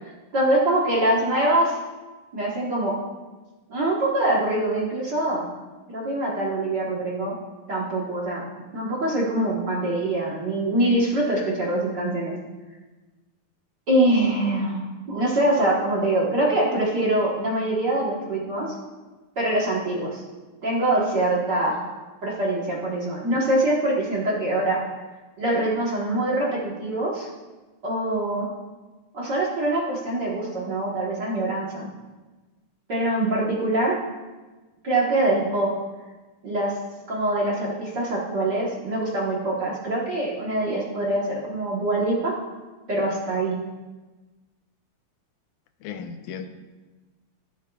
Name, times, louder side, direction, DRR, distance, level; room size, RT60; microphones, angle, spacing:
voice 1, 0.0-1.8 2.3-2.9 3.7-5.4 5.9-7.3 7.7-8.4 8.7-12.4 13.9-18.7 19.4-20.2 20.6-21.8 22.2-24.8 25.4-27.3 27.8-28.5 29.1-31.9 32.9-34.0 34.8-35.7 36.4-36.8 37.1-42.3 42.9-43.5, right 1 dB, 50° right, -5 dB, 1.5 m, -24 dB
voice 2, 45.8-46.5, left 7 dB, 85° left, 8 dB, 2.1 m, -35 dB
12.0 x 12.0 x 2.4 m, 1.2 s
omnidirectional pair, 3.4 m